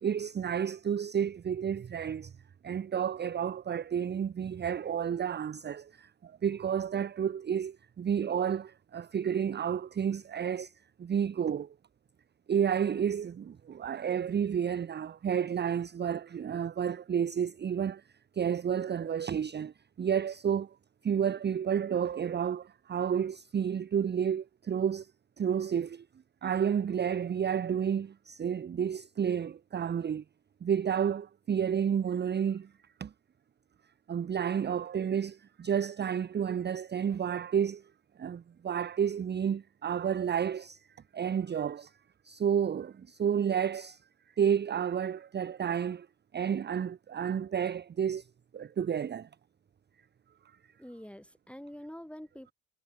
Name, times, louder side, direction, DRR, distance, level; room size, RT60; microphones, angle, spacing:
voice 1, 0.0-2.3 2.6-10.7 11.0-11.7 12.5-18.0 18.3-20.7 21.0-25.1 25.4-26.0 26.4-30.2 30.6-32.7 33.0-33.1 34.1-37.8 38.2-40.8 41.1-41.9 42.2-44.0 44.4-46.1 46.3-48.2 48.5-49.3, right 8 dB, 30° right, 0.5 m, -31 dB
voice 2, 50.8-52.5, equal, 5° left, 2.7 m, -46 dB
supercardioid pair, 50°, 38 cm